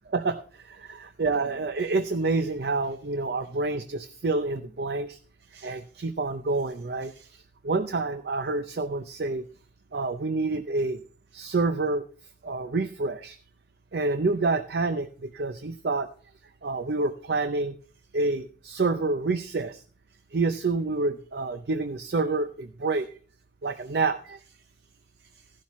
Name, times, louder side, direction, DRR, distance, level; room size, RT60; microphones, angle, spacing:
voice 1, 0.1-5.2 5.5-9.5 9.9-11.0 11.3-12.0 12.4-13.4 13.9-16.1 16.6-17.8 18.1-19.8 20.3-23.1 23.6-24.4, right 3 dB, 60° right, 10 dB, 0.6 m, -28 dB
14.5 x 11.5 x 3.1 m, 0.43 s
head